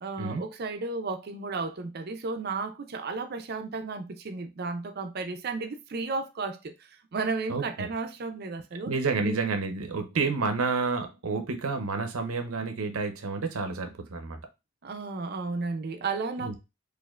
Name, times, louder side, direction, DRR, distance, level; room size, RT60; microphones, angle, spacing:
voice 1, 0.0-8.9 9.2-9.4 14.8-16.6, right 4 dB, 45° right, 0.5 m, -33 dB
voice 2, 7.5-7.9 8.8-14.4 16.4-16.6, right 4 dB, 85° right, 0.7 m, -30 dB
4.3 x 2.6 x 2.4 m
head